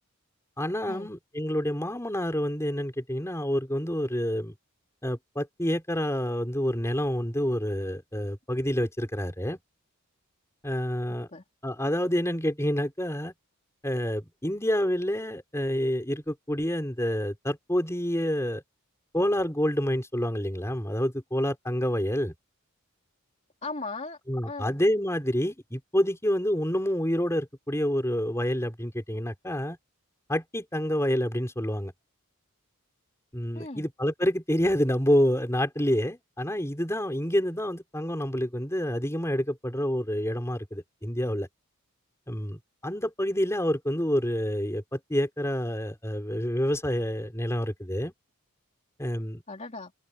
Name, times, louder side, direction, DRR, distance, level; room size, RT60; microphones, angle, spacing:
voice 1, 0.6-4.5 5.0-9.6 10.6-11.3 11.6-13.3 13.8-18.6 19.1-22.3 24.3-29.8 30.3-31.9 33.3-41.5 42.3-48.1 49.0-49.4, equal, 10° left, 4.6 m, -28 dB
voice 2, 11.1-11.4 23.6-24.2 24.5-24.8 33.5-33.9 49.5-49.9, left 3 dB, 30° left, 3.0 m, -37 dB
head